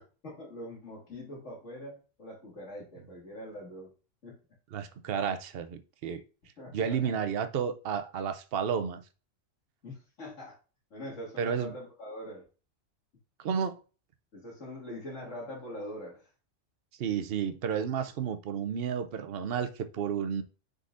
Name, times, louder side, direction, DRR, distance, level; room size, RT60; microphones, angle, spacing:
voice 1, 0.2-3.9 4.2-4.4 6.6-7.2 9.8-10.6 10.9-12.4 14.3-16.3, left 1 dB, 75° left, 2.6 m, -43 dB
voice 2, 4.7-6.2 6.7-9.0 11.4-11.7 13.4-13.8 17.0-20.4, right 7 dB, 55° right, 0.8 m, -31 dB
9.9 x 3.9 x 2.5 m
omnidirectional pair, 1.3 m